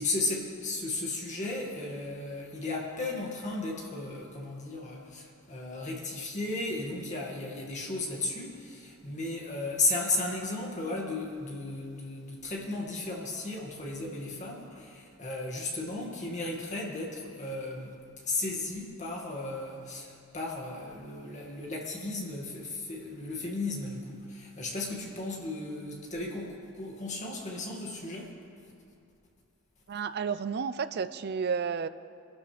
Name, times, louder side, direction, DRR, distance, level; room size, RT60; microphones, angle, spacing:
voice 1, 0.0-18.0 18.2-28.3, left 2 dB, 35° left, -1 dB, 2.0 m, -35 dB
voice 2, 29.9-31.9, right 6 dB, 50° right, 13 dB, 0.4 m, -31 dB
22.5 x 12.0 x 3.4 m, 2.4 s
head